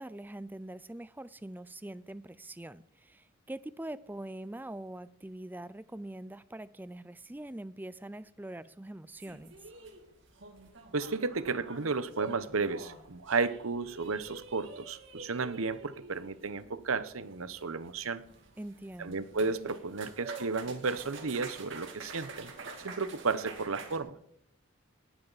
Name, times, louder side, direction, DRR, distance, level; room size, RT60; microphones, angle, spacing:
voice 1, 0.0-9.5 18.6-19.3, right 1 dB, 10° right, 0.4 m, -43 dB
sound 1, 9.2-24.0, right 3 dB, 60° right, 2.5 m, -48 dB
voice 2, 10.9-18.2 19.0-22.5 22.8-24.1, right 4 dB, 85° right, 0.9 m, -33 dB
19.0 x 11.5 x 4.1 m
head